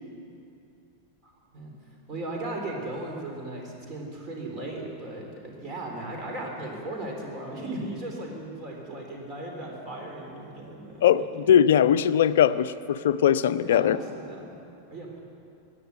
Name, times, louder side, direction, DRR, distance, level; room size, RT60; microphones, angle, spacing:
voice 1, 1.2-1.7 2.1-11.6 13.6-14.6 14.9-15.2, right 2 dB, 30° right, 0 dB, 3.6 m, -37 dB
voice 2, 11.0-14.0, left 9 dB, 60° left, 14 dB, 0.5 m, -20 dB
16.0 x 10.5 x 8.3 m, 2.6 s
figure-of-eight pair, 90°, 0 cm